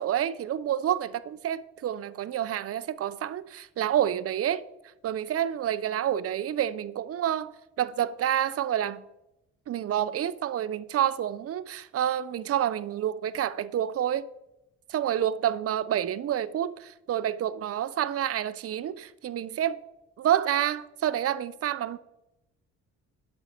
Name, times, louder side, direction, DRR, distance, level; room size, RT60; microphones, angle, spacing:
voice 1, 0.0-4.6 5.0-7.5 7.8-9.0 9.7-14.3 14.9-19.8 20.2-22.0, right 10 dB, 50° right, 0.5 m, -28 dB
12.0 x 5.3 x 4.4 m
cardioid pair, 90°, 30 cm